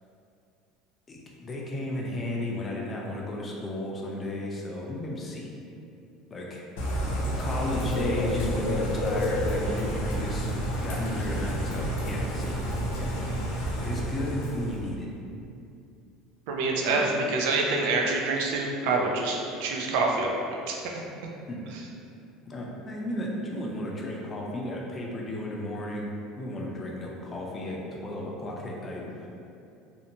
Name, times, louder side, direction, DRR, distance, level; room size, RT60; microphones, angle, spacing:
voice 1, 1.1-5.5 6.3-6.6 7.4-12.6 13.0-13.1 13.6-15.1 16.9-17.1 21.5-21.6 22.5-29.3, left 1 dB, 25° left, -2 dB, 0.5 m, -34 dB
Bird / Rain, 6.8-14.9, equal, 85° left, 0.5 m, -29 dB
voice 2, 16.5-20.4 20.7-20.8, right 3 dB, 75° right, -1 dB, 0.4 m, -26 dB
2.6 x 2.1 x 2.8 m, 2.6 s
supercardioid pair, 120°, 0 cm